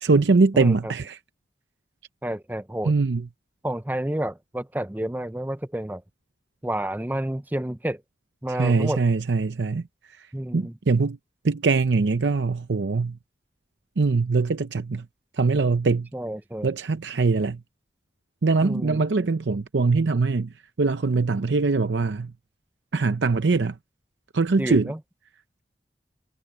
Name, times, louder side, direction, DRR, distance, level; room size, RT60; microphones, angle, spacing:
voice 1, 0.0-1.2 2.8-3.3 8.5-11.2 11.4-13.2 14.0-15.1 15.3-16.1 16.6-17.6 18.4-22.3 22.9-23.8 24.3-24.9, right 4 dB, 85° right, 0.6 m, -22 dB
voice 2, 0.5-0.9 2.2-2.9 3.6-6.0 6.6-8.0 8.4-9.0 10.3-10.7 16.1-16.7 18.6-19.0 24.6-25.0, right 1 dB, 10° right, 0.5 m, -30 dB
head